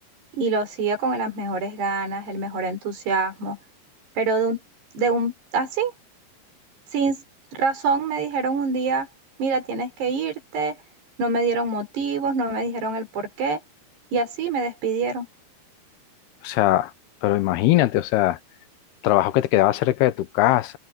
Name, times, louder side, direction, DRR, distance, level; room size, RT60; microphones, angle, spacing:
voice 1, 0.3-3.6 4.2-4.6 4.9-5.9 6.9-7.2 7.5-9.1 9.4-10.8 11.2-13.6 14.1-15.3, right 4 dB, 85° right, 7.6 m, -25 dB
voice 2, 16.4-16.9 17.2-18.4 19.0-20.8, left 15 dB, 80° left, 2.8 m, -20 dB
omnidirectional pair, 4.6 m